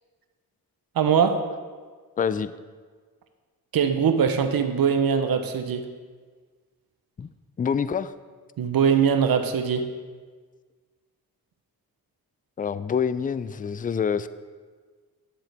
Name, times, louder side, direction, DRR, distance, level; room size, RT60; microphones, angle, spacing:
voice 1, 1.0-1.4 3.7-5.8 8.6-9.8, right 7 dB, 70° right, 8 dB, 0.9 m, -21 dB
voice 2, 2.2-2.5 7.2-7.3 7.6-8.1 12.6-14.3, left 7 dB, 25° left, 14 dB, 0.3 m, -26 dB
10.0 x 7.7 x 3.4 m, 1.5 s
cardioid pair, 65°, 37 cm